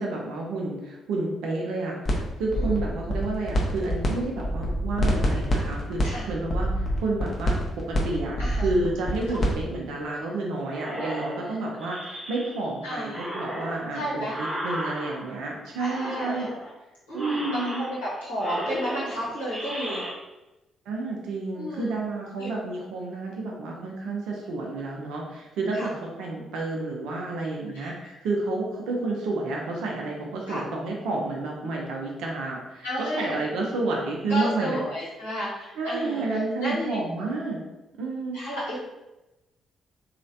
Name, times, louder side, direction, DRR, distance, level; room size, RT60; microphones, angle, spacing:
voice 1, 0.0-6.0 6.3-8.4 8.6-16.5 17.1-17.8 20.9-25.9 26.2-34.8 35.8-37.6 38.0-38.4, right 2 dB, 65° right, -1 dB, 0.5 m, -30 dB
sound 1, 2.1-2.2 2.5-4.1 4.4-9.6, equal, 40° left, 0.7 m, -26 dB
voice 2, 2.5-2.9 6.0-6.3 8.4-8.7 9.3-9.5 11.0-11.6 12.8-13.3 13.9-14.3 15.8-16.5 17.1-20.0 21.5-21.9 22.4-22.5 25.7-25.9 27.8-28.1 30.5-30.6 32.8-33.4 34.3-37.0 38.3-38.8, equal, 85° left, -10 dB, 0.9 m, -33 dB
sound 2, 10.7-12.7 13.1-15.5 15.8-16.7 17.1-18.1 18.4-20.1, equal, 20° right, 0.9 m, -35 dB
3.0 x 2.4 x 2.6 m, 1.0 s
figure-of-eight pair, 45°, 0 cm